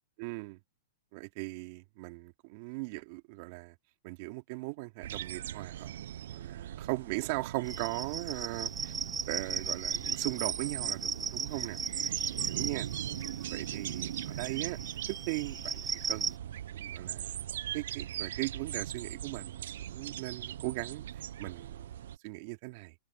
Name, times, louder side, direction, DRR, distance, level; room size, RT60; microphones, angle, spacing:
voice 1, 0.2-0.6 1.1-3.7 4.0-5.9 6.3-8.9 9.3-11.8 12.4-12.9 13.5-14.8 15.1-16.4 16.7-17.4 17.7-22.9, right 25 dB, 50° right, 2.5 m, -39 dB
sound 1, 5.0-22.2, right 11 dB, 70° right, 0.6 m, -40 dB
sound 2, 7.7-16.3, right 5 dB, 15° right, 3.0 m, -37 dB
hypercardioid pair, 135°, 0 cm